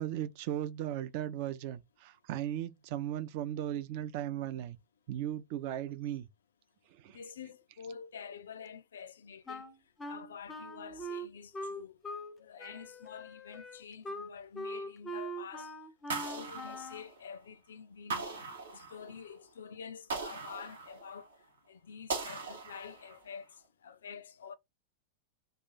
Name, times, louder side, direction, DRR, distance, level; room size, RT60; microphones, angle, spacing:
voice 1, 0.0-4.8 5.1-6.3 7.0-7.2, right 11 dB, 45° right, 0.4 m, -37 dB
voice 2, 7.1-9.7 10.0-12.0 12.3-15.8 16.1-18.4 18.7-24.5, left 6 dB, 65° left, 0.4 m, -48 dB
Wind instrument woodwind instrument, 9.5-12.3 12.6-17.1, equal, 10° left, 0.5 m, -42 dB
sound 1, 16.1-17.4 18.1-19.3 20.1-21.3 22.1-23.3, right 4 dB, 65° right, 0.9 m, -39 dB
2.7 x 2.3 x 4.1 m
figure-of-eight pair, 90°, 0 cm